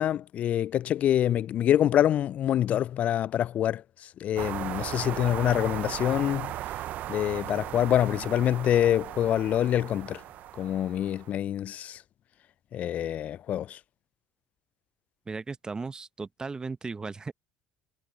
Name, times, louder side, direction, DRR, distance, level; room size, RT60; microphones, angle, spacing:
voice 1, 0.0-3.8 4.2-6.5 7.1-10.2 10.5-12.0 12.7-13.8, left 11 dB, 50° left, 0.3 m, -26 dB
sound 1, 4.4-11.3, right 13 dB, 60° right, 0.7 m, -37 dB
voice 2, 15.3-17.3, right 4 dB, 25° right, 1.0 m, -36 dB
hypercardioid pair, 65°, 3 cm